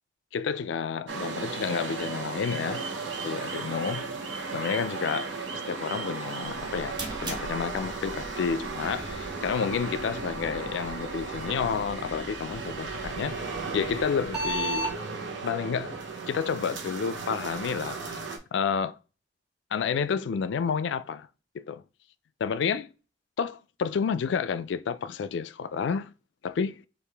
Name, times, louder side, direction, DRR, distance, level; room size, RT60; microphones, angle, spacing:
voice 1, 0.3-2.9 3.2-4.2 4.5-15.0 15.4-16.0 16.3-18.2 18.5-19.0 19.7-21.3 21.5-21.8 22.4-22.9 23.4-26.1 26.4-26.8, left 6 dB, 70° left, 0.3 m, -30 dB
sound 1, 1.1-18.4, right 4 dB, 90° right, 0.9 m, -36 dB
sound 2, 6.5-14.9, right 1 dB, 25° right, 1.5 m, -38 dB
4.8 x 2.5 x 3.3 m
head